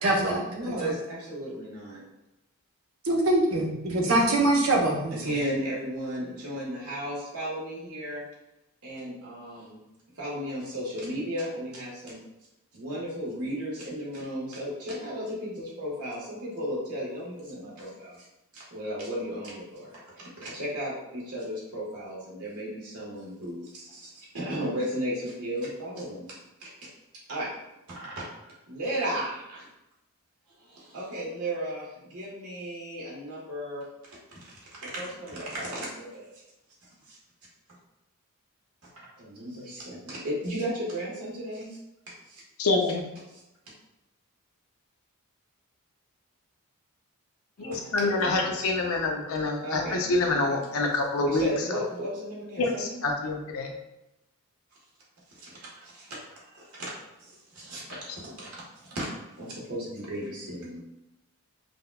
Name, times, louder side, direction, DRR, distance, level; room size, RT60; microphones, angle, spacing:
voice 1, 0.0-0.4 0.8-0.9 3.0-5.2, right 2 dB, 65° right, -1 dB, 0.8 m, -23 dB
voice 2, 0.5-2.0 3.9-4.3 5.1-8.2 8.8-9.8 10.2-12.2 12.7-18.2 18.5-26.7 27.3-27.5 27.9-28.3 28.7-29.7 30.6-33.8 34.3-34.5 34.8-36.3 37.1-37.2 39.0-41.8 42.3-42.4 47.6-48.6 49.6-50.0 50.3-50.6 51.2-53.0 55.3-56.9 57.2-58.5 58.8-59.1 59.4-60.8, equal, 85° right, -6 dB, 1.2 m, -35 dB
voice 3, 42.6-43.0 47.6-51.8 52.6-53.7, left 3 dB, 70° left, 2 dB, 0.5 m, -26 dB
5.0 x 2.2 x 2.2 m, 0.92 s
head